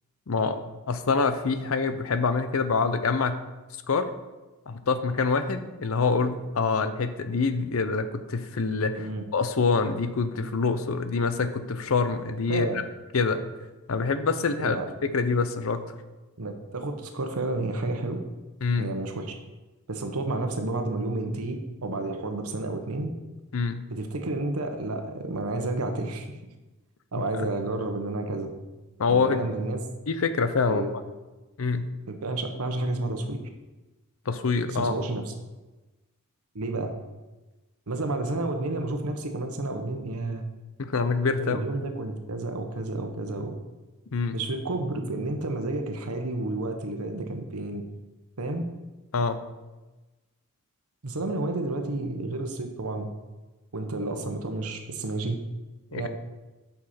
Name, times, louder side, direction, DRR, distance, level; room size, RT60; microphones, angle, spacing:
voice 1, 0.3-0.6 0.9-3.4 3.9-4.1 4.7-12.8 13.1-13.4 13.9-14.8 15.0-15.8 18.6-18.9 23.5-23.8 27.4-27.5 29.0-29.5 30.1-30.8 31.6-31.9 34.3-34.9 40.8-41.6 44.1-44.4 49.1-49.5 55.9-56.1, left 4 dB, 65° left, 10 dB, 0.6 m, -26 dB
voice 2, 12.5-12.8 14.6-14.9 16.4-18.2 18.8-19.3 19.9-23.1 23.9-26.3 27.1-28.5 29.1-29.9 30.7-30.9 32.1-33.5 34.7-35.3 36.5-36.9 37.9-40.5 41.4-43.6 44.3-47.8 48.4-48.6 51.0-53.1 53.7-55.4 55.9-56.1, right 2 dB, 90° right, 5 dB, 1.0 m, -31 dB
7.7 x 6.0 x 4.3 m, 1.1 s
head